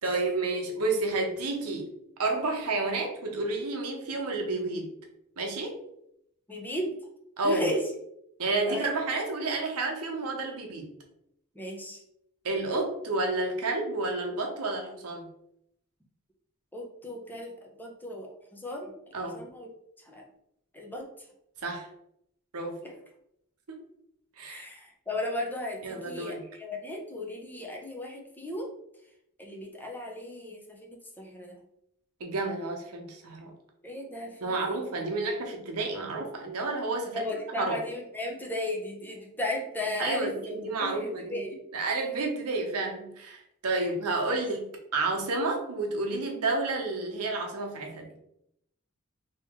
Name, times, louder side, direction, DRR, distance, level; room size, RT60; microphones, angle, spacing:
voice 1, 0.0-1.9 2.2-4.9 5.4-5.8 7.4-7.7 8.4-11.0 12.4-15.3 19.1-19.4 21.6-21.9 22.5-22.8 23.7-23.8 24.4-24.6 25.8-26.4 32.2-33.5 34.4-37.2 37.6-37.8 40.0-41.4 41.7-44.7 44.9-48.1, right 3 dB, 85° right, 2 dB, 0.8 m, -30 dB
voice 2, 6.5-7.0 7.4-7.9 8.6-8.9 11.5-12.0 16.7-17.5 17.8-18.9 19.3-19.7 20.0-20.2 20.7-21.1 22.8-22.9 24.5-28.7 29.4-31.6 33.8-34.8 37.1-41.6 43.8-43.9 44.3-44.4, left 1 dB, 10° left, 0 dB, 0.5 m, -35 dB
2.9 x 2.9 x 3.5 m, 0.76 s
head